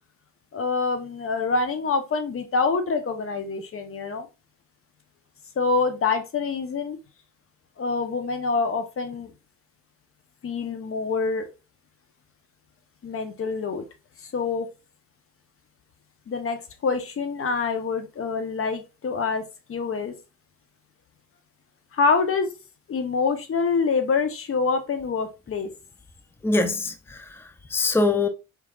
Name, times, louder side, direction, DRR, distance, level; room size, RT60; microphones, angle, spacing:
voice 1, 0.5-4.3 5.6-7.0 7.8-9.3 10.4-11.5 13.0-13.9 14.2-14.7 16.3-20.1 21.9-22.5 22.9-25.7, left 4 dB, 45° left, 1.0 m, -26 dB
voice 2, 26.4-28.3, left 3 dB, 10° left, 0.6 m, -24 dB
4.5 x 3.6 x 2.5 m
cardioid pair, 90°, 30 cm